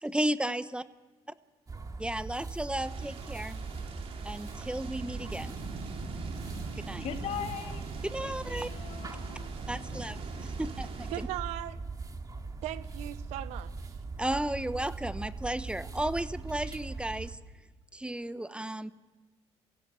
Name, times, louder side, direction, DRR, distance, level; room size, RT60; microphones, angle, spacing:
voice 1, 0.0-0.8 2.0-3.6 4.2-5.6 6.8-7.1 8.0-8.7 9.7-11.3 14.2-17.4 17.9-18.9, right 1 dB, 10° right, 1.0 m, -34 dB
sound 1, 1.7-17.3, right 4 dB, 35° right, 2.4 m, -40 dB
sound 2, 2.8-11.2, right 3 dB, 60° right, 3.8 m, -44 dB
voice 2, 7.0-7.9 8.2-9.5 9.7-10.0 10.3-10.5, left 8 dB, 70° left, 2.4 m, -40 dB
voice 3, 11.1-11.8 12.6-14.0, right 14 dB, 85° right, 0.9 m, -38 dB
23.0 x 16.0 x 7.6 m
supercardioid pair, 70°, 11 cm